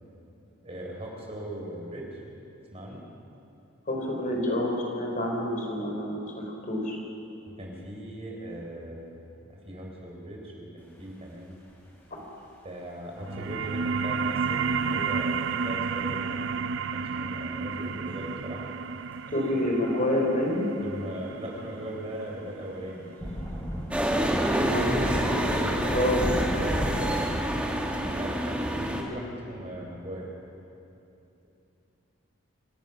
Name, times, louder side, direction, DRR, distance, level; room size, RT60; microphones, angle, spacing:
voice 1, 0.6-2.1 2.7-3.0 7.6-9.1 9.4-11.6 12.6-16.5 16.9-18.7 20.8-23.1 26.5-27.2 27.6-30.3, right 1 dB, 30° right, -1 dB, 4.0 m, -39 dB
voice 2, 3.9-7.0 12.1-12.2 19.3-20.7 24.5-26.3, left 1 dB, 40° left, 0 dB, 3.8 m, -28 dB
sound 1, 13.2-24.3, right 5 dB, 60° right, 0.5 m, -32 dB
sound 2, 18.1-18.2 19.4-19.5 23.2-27.6, equal, 10° left, 3.4 m, -33 dB
sound 3, 23.9-29.0, right 1 dB, 5° right, 1.7 m, -27 dB
26.0 x 16.5 x 6.0 m, 2.7 s
head